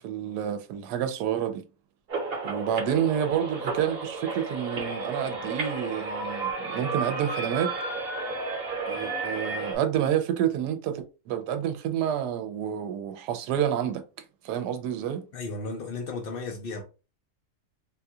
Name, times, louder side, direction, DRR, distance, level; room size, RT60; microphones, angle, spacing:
voice 1, 0.0-1.6 2.4-7.7 8.9-14.0 14.4-15.2, right 9 dB, 80° right, 1.1 m, -29 dB
sound 1, 2.1-9.8, right 3 dB, 45° right, 0.9 m, -32 dB
voice 2, 15.3-16.8, left 3 dB, 70° left, 0.5 m, -34 dB
3.8 x 2.3 x 2.7 m
omnidirectional pair, 1.7 m